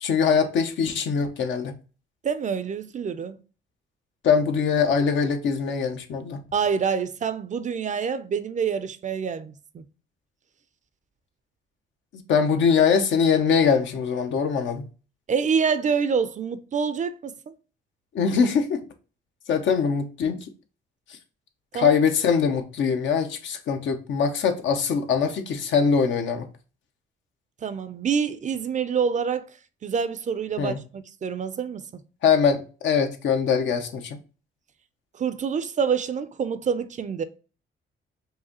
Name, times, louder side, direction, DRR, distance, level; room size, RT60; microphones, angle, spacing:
voice 1, 0.0-1.8 4.2-6.4 12.3-14.9 18.1-18.8 19.5-20.5 21.7-26.5 30.6-30.8 32.2-34.2, left 6 dB, 70° left, 0.8 m, -22 dB
voice 2, 2.2-3.4 6.5-9.8 15.3-17.5 21.7-22.0 27.6-29.5 29.8-32.0 35.2-37.2, right 6 dB, 40° right, 0.4 m, -26 dB
4.8 x 2.6 x 2.8 m
cardioid pair, 90°, 20 cm